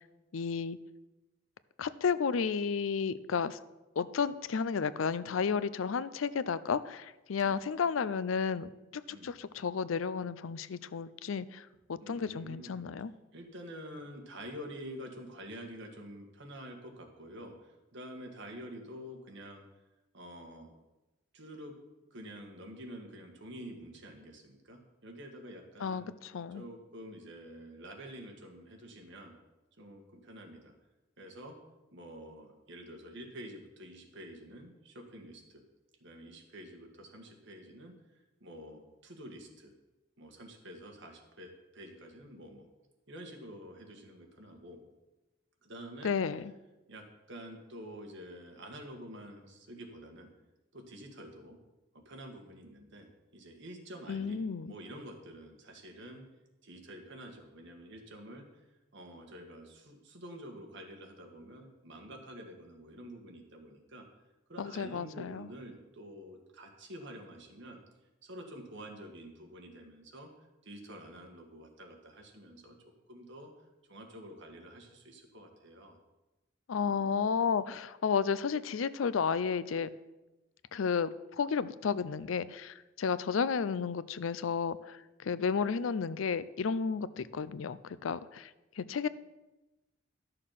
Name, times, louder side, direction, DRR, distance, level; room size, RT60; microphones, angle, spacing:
voice 1, 0.3-0.8 1.8-3.6 4.0-13.1 25.8-26.6 46.0-46.5 54.1-54.7 64.6-65.5 76.7-79.9 80.7-88.5 88.8-89.1, left 6 dB, 85° left, 16 dB, 0.5 m, -32 dB
voice 2, 12.0-12.8 13.3-19.7 20.1-20.7 21.3-21.8 22.1-26.1 26.5-29.3 29.8-30.7 31.2-31.6 31.9-35.6 36.0-37.9 38.4-39.7 40.2-42.7 43.1-44.8 45.6-46.1 46.9-50.3 50.7-51.6 51.9-56.3 56.6-58.7 58.9-64.1 64.5-67.8 68.2-70.3 70.6-72.8 73.1-73.5 73.9-76.0, equal, 65° right, 3 dB, 1.8 m, -48 dB
12.0 x 6.5 x 5.8 m, 1.0 s
head